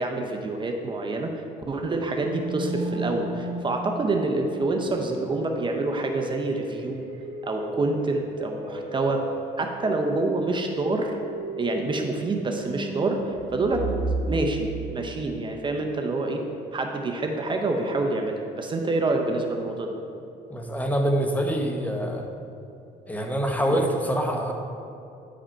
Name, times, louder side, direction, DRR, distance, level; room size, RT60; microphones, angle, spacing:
voice 1, 0.0-7.1 7.4-9.2 9.6-11.2 11.6-13.9 14.2-16.4 16.7-20.0 23.7-23.9, right 2 dB, 30° right, 3 dB, 0.7 m, -27 dB
sound 1, 2.2-14.3, right 2 dB, 70° right, 1.8 m, -35 dB
voice 2, 20.5-22.3 23.1-24.5, equal, 10° left, 2 dB, 0.9 m, -25 dB
9.8 x 5.0 x 4.5 m, 2.7 s
cardioid pair, 110°, 17 cm